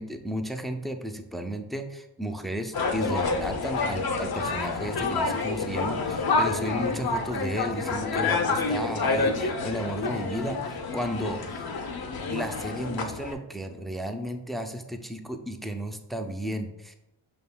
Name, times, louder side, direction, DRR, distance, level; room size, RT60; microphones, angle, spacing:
voice 1, 0.0-11.7 12.3-16.9, equal, ahead, 6 dB, 0.4 m, -33 dB
sound 1, 2.7-13.3, left 4 dB, 50° left, 0.6 m, -28 dB
5.1 x 3.5 x 2.2 m, 0.90 s
cardioid pair, 45°, 47 cm